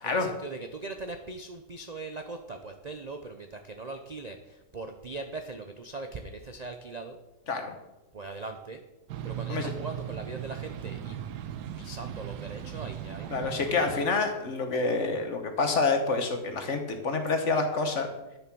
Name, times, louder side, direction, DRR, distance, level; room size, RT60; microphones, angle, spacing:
voice 1, 0.0-7.2 8.1-8.8 9.2-11.2 11.8-13.7, right 3 dB, 50° right, 6 dB, 0.5 m, -40 dB
sound 1, 9.1-14.1, right 10 dB, 90° right, 1.3 m, -38 dB
voice 2, 13.3-18.1, left 3 dB, 50° left, 5 dB, 1.5 m, -27 dB
10.0 x 7.1 x 6.1 m, 1.0 s
omnidirectional pair, 1.7 m